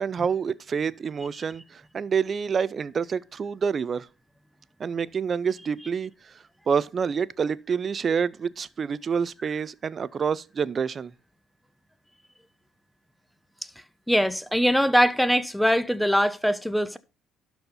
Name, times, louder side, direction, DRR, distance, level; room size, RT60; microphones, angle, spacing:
voice 1, 0.0-4.1 4.8-6.1 6.7-11.1, right 6 dB, 40° right, 0.5 m, -27 dB
voice 2, 14.1-17.0, equal, ahead, 0.9 m, -22 dB
12.0 x 4.4 x 5.4 m
supercardioid pair, 75°, 0 cm